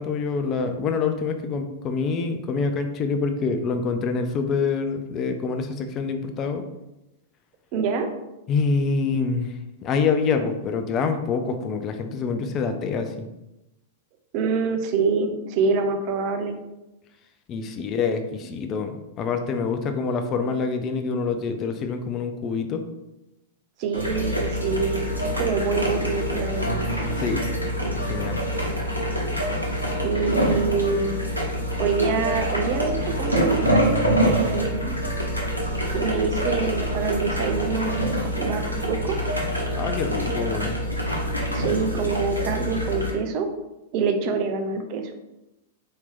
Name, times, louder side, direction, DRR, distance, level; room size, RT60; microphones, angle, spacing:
voice 1, 0.0-6.6 8.5-13.1 17.5-22.8 27.2-27.5 28.1-28.4 39.8-40.8, left 5 dB, 30° left, 7 dB, 0.4 m, -26 dB
voice 2, 7.7-8.1 14.3-16.6 23.8-25.0 25.4-26.9 30.0-31.2 31.8-35.0 35.9-39.2 41.5-43.5 43.9-45.1, right 5 dB, 40° right, 5 dB, 0.5 m, -26 dB
sound 1, 23.9-43.1, equal, 90° right, 0.8 m, -25 dB
4.3 x 2.8 x 3.5 m, 0.95 s
figure-of-eight pair, 95°, 0 cm